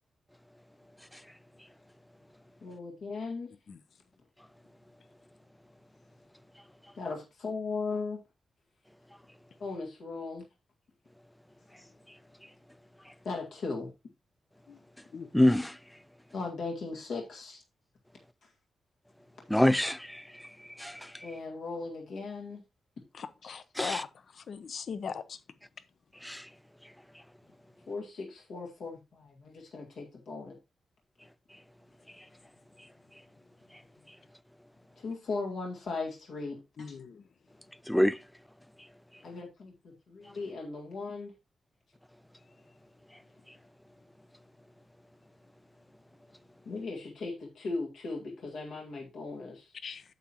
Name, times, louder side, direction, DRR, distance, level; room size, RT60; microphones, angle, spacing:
voice 1, 2.6-3.5 7.0-8.2 9.6-10.4 13.2-13.9 16.3-17.6 21.2-22.6 27.9-30.6 35.0-36.6 39.2-41.3 46.7-49.7, left 3 dB, 75° left, 2.0 m, -37 dB
voice 2, 15.3-15.8 19.5-20.5 20.8-21.3 23.8-24.0 26.2-26.5 37.9-38.2, left 1 dB, 5° left, 0.3 m, -26 dB
voice 3, 23.1-24.1 24.4-25.4 36.8-37.2 49.8-50.0, left 6 dB, 55° left, 0.6 m, -39 dB
9.0 x 7.3 x 3.0 m
wide cardioid pair, 135°, 0 cm